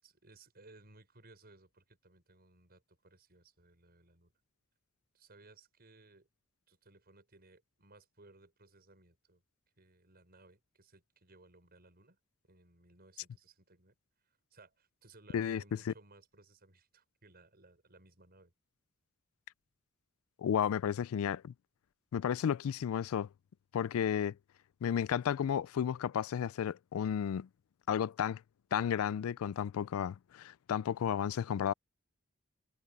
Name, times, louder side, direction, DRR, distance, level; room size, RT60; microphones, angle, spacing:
voice 1, 0.0-4.3 5.1-6.3 6.7-9.4 9.8-12.2 12.4-13.9 14.2-18.5, right 2 dB, 50° right, 6.3 m, -61 dB
voice 2, 20.4-21.5 22.1-23.3 23.7-24.3 24.8-27.5 27.9-28.4 28.7-31.7, left 8 dB, 80° left, 0.3 m, -33 dB
head